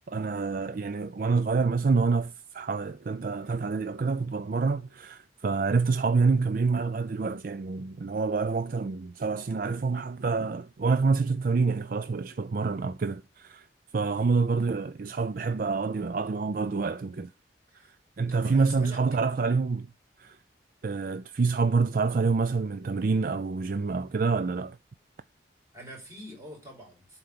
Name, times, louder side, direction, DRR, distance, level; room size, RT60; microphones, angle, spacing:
voice 1, 0.1-13.7 13.9-17.3 17.7-19.9 20.2-20.4 20.8-24.8, right 4 dB, 50° right, 0.4 m, -27 dB
voice 2, 18.3-19.0 25.7-27.2, right 1 dB, 15° right, 4.7 m, -45 dB
11.5 x 4.5 x 6.9 m
head